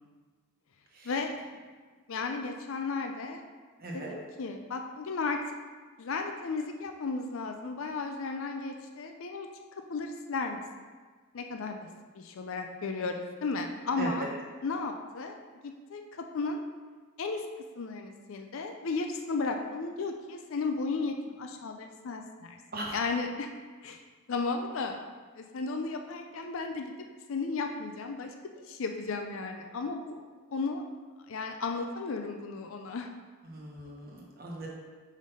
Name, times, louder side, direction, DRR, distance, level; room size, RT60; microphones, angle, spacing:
voice 1, 1.0-1.4 2.1-3.4 3.9-5.4 6.0-9.5 9.9-10.6 11.3-11.8 12.1-14.3 14.6-15.4 15.6-16.6 17.2-17.5 17.8-22.6 22.9-23.5 23.8-24.0 24.3-25.0 25.3-26.9 27.3-30.2 30.5-30.8 31.3-33.1, left 4 dB, 65° left, 4 dB, 0.5 m, -34 dB
voice 2, 3.8-4.1 14.0-14.3 22.7-23.0 33.4-34.7, right 1 dB, 40° right, -2 dB, 1.1 m, -38 dB
5.1 x 3.9 x 5.3 m, 1.4 s
head